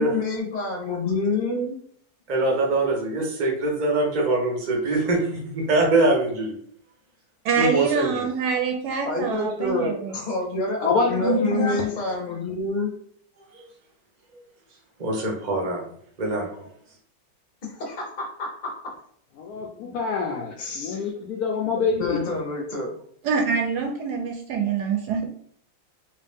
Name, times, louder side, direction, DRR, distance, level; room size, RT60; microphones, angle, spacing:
voice 1, 0.0-1.8 9.0-12.9 17.6-18.7 20.6-21.1 21.7-22.9, left 3 dB, 35° left, -1 dB, 0.7 m, -28 dB
voice 2, 2.3-6.5 7.5-8.2 13.5-13.6 15.0-15.8 16.2-16.7, right 2 dB, 55° right, -1 dB, 0.4 m, -23 dB
voice 3, 7.4-10.2 11.2-11.7 23.2-25.3, right 6 dB, 75° right, 2 dB, 1.0 m, -25 dB
voice 4, 10.8-11.8 19.4-22.2, left 5 dB, 75° left, 0 dB, 0.8 m, -26 dB
3.1 x 2.7 x 3.5 m, 0.63 s
omnidirectional pair, 2.1 m